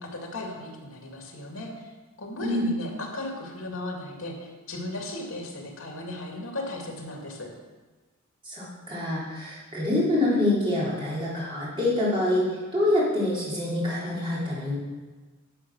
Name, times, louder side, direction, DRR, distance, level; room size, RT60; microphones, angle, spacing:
voice 1, 0.0-1.8 2.2-7.5, left 1 dB, 70° left, 0 dB, 2.5 m, -36 dB
voice 2, 8.4-12.4 12.7-14.8, left 1 dB, 25° right, -7 dB, 3.6 m, -26 dB
10.5 x 6.6 x 6.2 m, 1.3 s
head